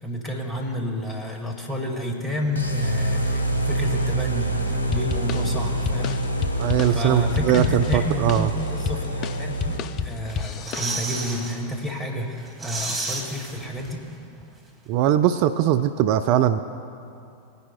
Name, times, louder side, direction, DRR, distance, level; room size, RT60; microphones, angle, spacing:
voice 1, 0.0-6.2 6.9-14.0, equal, 15° left, 1 dB, 1.9 m, -30 dB
sound 1, 2.5-10.2, right 1 dB, 75° left, 1.3 m, -26 dB
sound 2, 4.9-11.3, left 7 dB, 35° left, 0.4 m, -31 dB
voice 2, 6.6-8.5 14.9-16.6, right 11 dB, 45° right, 10 dB, 0.4 m, -21 dB
sound 3, 10.3-11.6 12.0-12.1 12.4-14.1 14.4-14.5, right 3 dB, 15° right, 1.7 m, -32 dB
21.0 x 10.5 x 2.2 m, 2.6 s
figure-of-eight pair, 90°, 0 cm